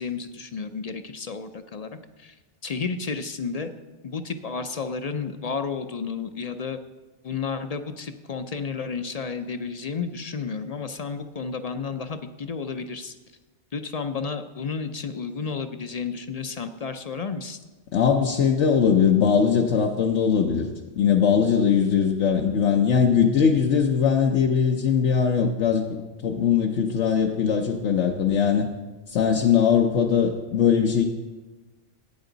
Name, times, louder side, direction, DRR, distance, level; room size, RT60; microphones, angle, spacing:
voice 1, 0.0-1.9 2.2-2.4 2.6-3.7 4.0-6.8 7.2-13.1 13.7-17.6, left 5 dB, 45° left, 8 dB, 0.5 m, -32 dB
voice 2, 17.9-20.7 21.0-25.9 26.2-28.7 29.1-31.0, left 7 dB, 75° left, 2 dB, 1.1 m, -20 dB
14.5 x 9.1 x 3.9 m, 1.2 s
omnidirectional pair, 1.2 m